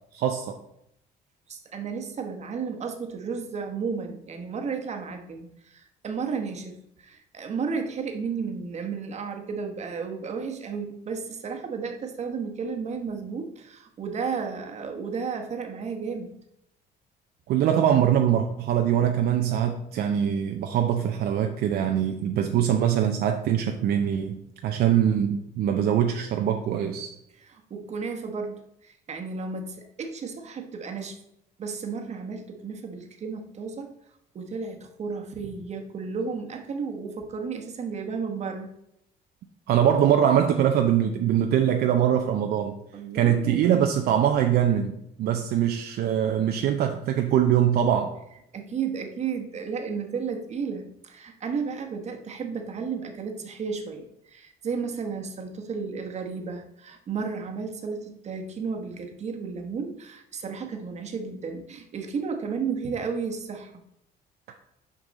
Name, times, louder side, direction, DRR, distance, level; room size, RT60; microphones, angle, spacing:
voice 1, 0.1-0.6 17.5-24.4 24.6-27.1 39.7-42.8 43.1-48.1, right 9 dB, 70° right, 4 dB, 0.6 m, -23 dB
voice 2, 1.5-16.3 27.4-31.2 31.6-34.0 34.3-38.7 42.9-43.7 48.5-63.7, right 5 dB, 40° right, 4 dB, 1.1 m, -33 dB
6.2 x 5.3 x 4.1 m, 0.79 s
cardioid pair, 110°, 17 cm